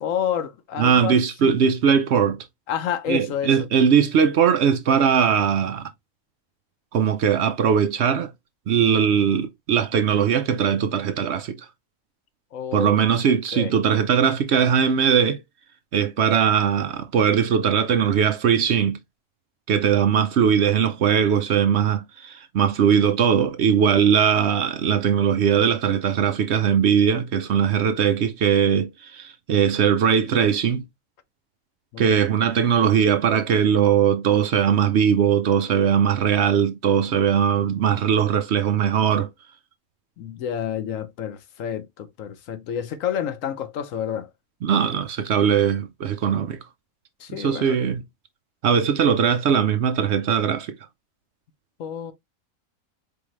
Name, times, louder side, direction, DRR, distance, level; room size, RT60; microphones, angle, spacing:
voice 1, 0.0-1.5 2.7-3.6 12.5-12.9 13.5-13.7 31.9-32.1 40.2-44.3 47.2-47.8 51.8-52.1, left 8 dB, 70° left, 1.1 m, -29 dB
voice 2, 0.8-2.5 3.1-5.9 6.9-8.3 8.7-11.7 12.7-15.4 15.9-19.0 19.7-30.8 32.0-39.3 44.6-46.6 47.3-48.0 48.6-50.8, right 8 dB, 65° right, 0.7 m, -20 dB
4.6 x 3.5 x 3.0 m
omnidirectional pair, 1.4 m